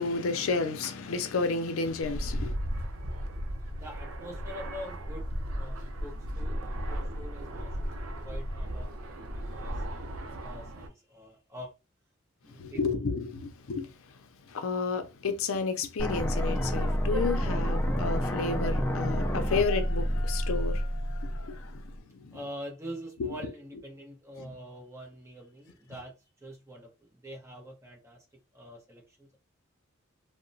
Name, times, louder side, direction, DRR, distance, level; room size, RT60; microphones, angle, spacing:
voice 1, 0.0-2.6 12.6-13.9 14.5-22.4 23.2-23.3 24.4-24.5, left 4 dB, 80° left, 0.5 m, -31 dB
Fixed-wing aircraft airplane, 2.0-10.9, equal, 90° right, 0.5 m, -35 dB
voice 2, 3.8-11.7 12.4-12.8 22.3-26.1 26.4-28.2 28.5-29.4, equal, 15° right, 0.9 m, -45 dB
sound 1, 16.0-22.0, equal, 10° left, 0.4 m, -29 dB
2.8 x 2.1 x 2.6 m
head